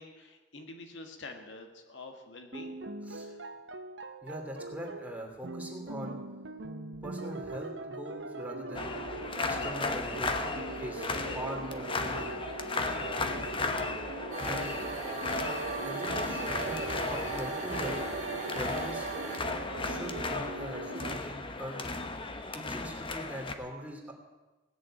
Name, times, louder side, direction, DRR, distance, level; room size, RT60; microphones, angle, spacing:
voice 1, 0.0-2.8 3.1-3.4 14.8-14.9, left 3 dB, 75° left, 4 dB, 1.7 m, -47 dB
sound 1, 2.5-21.2, right 2 dB, 70° right, 1.0 m, -41 dB
voice 2, 4.2-6.2 7.0-9.0 9.5-12.3 14.4-14.8 15.8-18.0 18.5-19.1 19.8-22.0 22.5-24.1, right 1 dB, 10° right, 0 dB, 2.9 m, -42 dB
sound 2, 8.7-23.5, left 3 dB, 30° left, 1.0 m, -35 dB
sound 3, 14.3-19.4, right 4 dB, 40° right, 1.9 m, -38 dB
18.0 x 6.8 x 8.9 m, 1.2 s
head